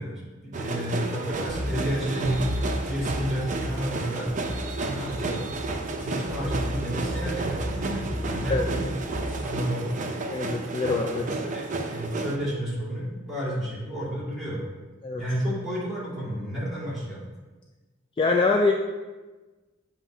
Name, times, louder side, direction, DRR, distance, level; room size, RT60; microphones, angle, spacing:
voice 1, 0.0-2.4 2.9-4.3 4.9-5.4 6.0-8.9 9.4-10.0 10.9-14.6 15.2-17.3, equal, ahead, -6 dB, 1.9 m, -31 dB
sound 1, 0.5-12.4, right 3 dB, 40° right, 0.5 m, -32 dB
sound 2, 1.5-9.5, equal, 50° left, 1.2 m, -34 dB
voice 2, 10.3-11.3 15.0-15.2 18.2-18.7, left 3 dB, 25° left, 2 dB, 0.3 m, -24 dB
7.4 x 3.0 x 4.4 m, 1.2 s
head